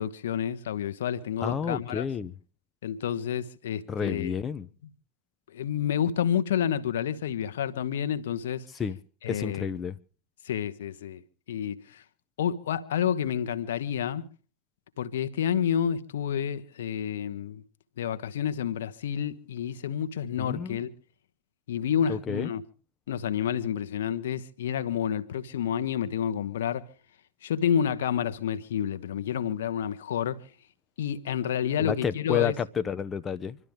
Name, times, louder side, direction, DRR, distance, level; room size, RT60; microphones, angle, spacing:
voice 1, 0.0-2.0 2.8-4.3 5.5-8.7 9.2-9.7 10.4-11.2 11.5-12.0 12.4-14.3 15.0-17.6 18.0-20.9 21.7-22.6 23.1-26.9 27.4-30.4 31.0-32.5, left 9 dB, 60° left, 1.1 m, -29 dB
voice 2, 1.4-2.3 3.9-4.7 8.7-9.0 9.3-10.0 20.4-20.8 22.1-22.5 31.8-33.6, left 7 dB, 20° left, 0.7 m, -30 dB
26.5 x 12.0 x 3.5 m
figure-of-eight pair, 90°, 0 cm